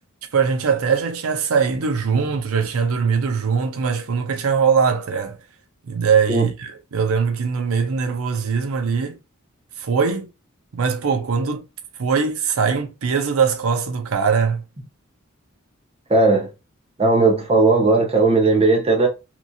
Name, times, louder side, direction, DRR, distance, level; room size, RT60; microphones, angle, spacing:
voice 1, 0.3-5.4 5.9-9.2 9.8-10.3 10.7-11.6 12.0-14.6, right 6 dB, 80° right, 0.5 m, -21 dB
voice 2, 16.1-16.5 17.0-19.1, right 3 dB, 30° right, 0.8 m, -16 dB
2.9 x 2.6 x 2.3 m
head